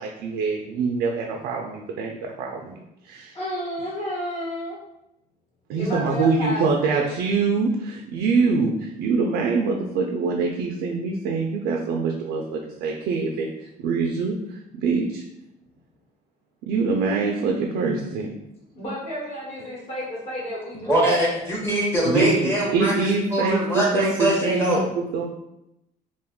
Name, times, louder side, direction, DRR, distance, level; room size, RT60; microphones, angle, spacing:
voice 1, 0.0-3.3 5.7-13.5 13.8-14.3 14.8-15.2 16.7-18.3 22.1-25.3, right 4 dB, 85° right, 1 dB, 0.4 m, -24 dB
voice 2, 3.3-4.8 5.7-7.1 18.7-21.2, equal, 40° left, -5 dB, 1.1 m, -31 dB
voice 3, 20.9-24.9, right 1 dB, 15° left, -4 dB, 0.9 m, -23 dB
2.5 x 2.3 x 3.5 m, 0.85 s
cardioid pair, 110°, 17 cm